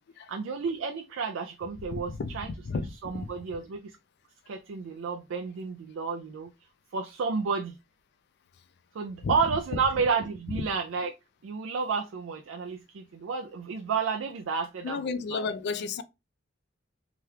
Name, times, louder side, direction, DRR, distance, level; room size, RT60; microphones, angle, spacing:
voice 1, 0.3-2.5 3.0-4.0 4.5-6.5 6.9-7.8 8.9-11.1 11.4-15.5, right 5 dB, 75° right, 0.4 m, -31 dB
voice 2, 2.7-3.3 9.2-9.3 14.8-16.0, left 4 dB, 60° left, 0.4 m, -32 dB
2.9 x 2.3 x 3.2 m
head